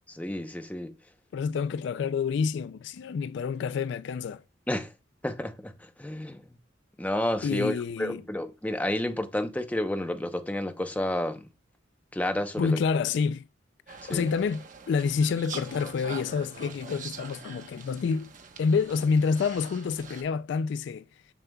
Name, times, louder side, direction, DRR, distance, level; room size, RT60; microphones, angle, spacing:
voice 1, 0.1-0.9 4.7-4.9 5.2-6.5 7.0-11.5 12.1-12.8 14.0-14.3, left 1 dB, 10° left, 0.7 m, -30 dB
voice 2, 1.3-4.4 7.4-8.2 12.6-13.4 13.9-18.3 18.6-21.0, left 5 dB, 70° left, 0.3 m, -28 dB
sound 1, 13.9-20.2, right 5 dB, 45° right, 1.1 m, -44 dB
7.3 x 6.8 x 2.3 m
head